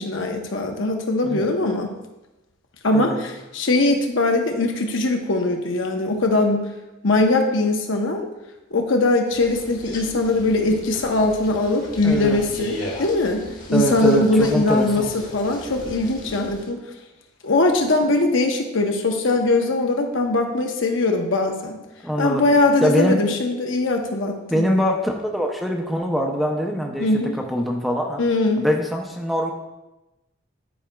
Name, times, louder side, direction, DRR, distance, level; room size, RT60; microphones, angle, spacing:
voice 1, 0.0-1.9 2.8-6.6 7.0-8.2 8.7-13.4 13.7-15.0 15.3-16.8 17.4-21.8 22.2-24.6 27.0-27.3 28.2-28.6, left 2 dB, 75° left, 3 dB, 0.8 m, -21 dB
sound 1, 9.3-16.7, left 1 dB, 45° left, 1.2 m, -37 dB
voice 2, 12.0-12.4 13.7-15.1 22.0-22.4 22.8-23.2 24.5-28.2 28.6-29.5, equal, ahead, 1 dB, 0.5 m, -23 dB
10.0 x 4.9 x 2.3 m, 0.99 s
head